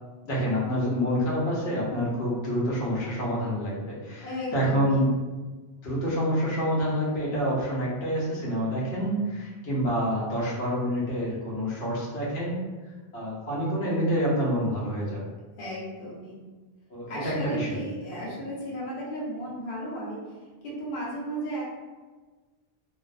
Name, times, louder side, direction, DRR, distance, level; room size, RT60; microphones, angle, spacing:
voice 1, 0.2-5.1 5.8-12.6 13.1-15.2 16.9-17.8, equal, 80° left, -7 dB, 1.0 m, -27 dB
voice 2, 4.2-5.1 15.6-16.4 17.1-20.2 20.6-21.6, right 1 dB, 60° left, -6 dB, 0.8 m, -34 dB
2.6 x 2.0 x 2.4 m, 1.3 s
omnidirectional pair, 1.1 m